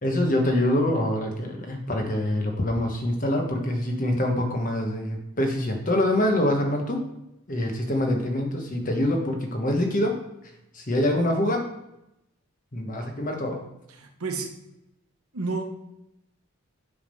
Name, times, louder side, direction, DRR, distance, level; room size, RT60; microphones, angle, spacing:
voice 1, 0.0-7.0 7.5-10.2 10.7-11.6 12.7-13.6, left 1 dB, 35° left, 2 dB, 1.1 m, -25 dB
voice 2, 14.0-14.5 15.3-15.6, right 3 dB, 80° right, 4 dB, 1.0 m, -30 dB
8.6 x 3.5 x 5.4 m, 0.87 s
head